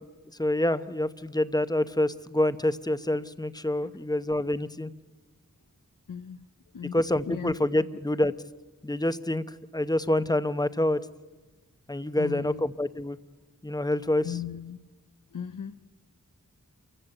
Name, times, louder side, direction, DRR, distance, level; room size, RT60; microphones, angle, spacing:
voice 1, 0.4-4.9 6.9-8.3 8.8-11.0 11.9-13.2 13.6-14.3, left 1 dB, 10° left, 12 dB, 0.8 m, -27 dB
voice 2, 6.1-6.5 6.7-7.9 12.2-12.6 14.2-14.8 15.3-15.8, left 8 dB, 65° left, 9 dB, 0.7 m, -37 dB
28.5 x 15.5 x 7.8 m, 1.3 s
wide cardioid pair, 40°, 35 cm